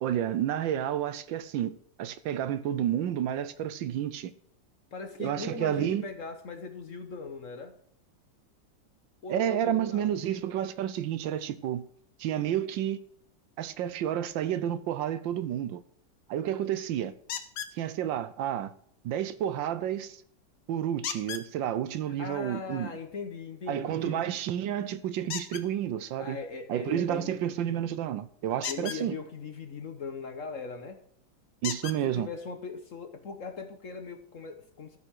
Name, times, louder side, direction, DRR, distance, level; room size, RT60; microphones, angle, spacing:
voice 1, 0.0-4.3 5.2-6.0 9.3-11.8 12.2-13.0 13.6-15.8 16.3-17.1 17.8-18.7 19.0-20.2 20.7-22.9 23.7-26.4 26.7-29.2 31.6-32.3, right 10 dB, 75° right, 1.4 m, -30 dB
voice 2, 4.9-7.7 9.2-10.3 22.1-24.4 26.2-27.5 28.7-31.0 32.0-35.0, left 4 dB, 50° left, 1.2 m, -40 dB
sound 1, 17.3-17.8 21.0-21.5 25.3-25.6 28.6-29.0 30.7-30.8 31.6-32.0 33.0-33.1 33.6-33.7, left 8 dB, 70° left, 1.6 m, -35 dB
13.5 x 5.8 x 6.4 m
omnidirectional pair, 2.1 m